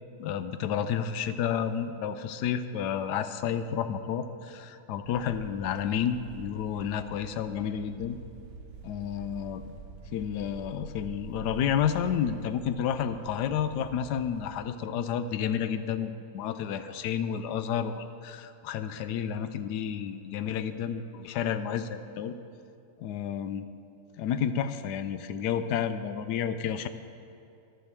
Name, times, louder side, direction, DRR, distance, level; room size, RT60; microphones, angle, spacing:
voice 1, 0.2-8.2 8.8-9.6 10.1-22.3 23.0-23.7 24.2-26.9, left 8 dB, 80° left, 11 dB, 1.1 m, -31 dB
sound 1, 5.0-14.6, right 4 dB, 85° right, 1.4 m, -47 dB
11.5 x 6.4 x 6.8 m, 2.5 s
omnidirectional pair, 1.8 m